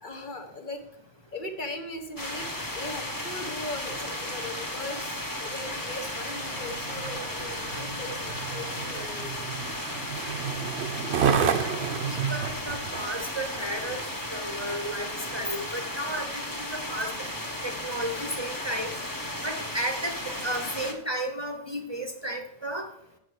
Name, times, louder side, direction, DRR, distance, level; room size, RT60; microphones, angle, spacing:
voice 1, 0.0-0.9 1.3-9.4 16.1-16.3, left 1 dB, 50° left, 4 dB, 1.2 m, -39 dB
sound 1, 2.2-20.9, left 1 dB, 20° left, 1.1 m, -35 dB
Skateboard, 6.1-15.0 15.6-15.7, right 7 dB, 85° right, 1.0 m, -32 dB
voice 2, 11.3-17.1 17.6-18.9 19.4-22.9, right 1 dB, 25° right, 4 dB, 0.8 m, -33 dB
7.6 x 6.4 x 6.5 m, 0.82 s
omnidirectional pair, 1.1 m